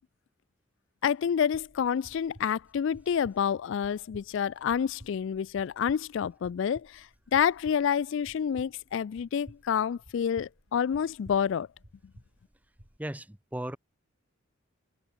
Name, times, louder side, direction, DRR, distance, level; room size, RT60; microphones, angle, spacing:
voice 1, 1.0-11.7, left 8 dB, 60° left, 0.3 m, -28 dB
sound 1, 1.5-13.0, equal, 35° right, 6.3 m, -55 dB
voice 2, 13.0-13.8, right 1 dB, 5° right, 0.7 m, -36 dB
head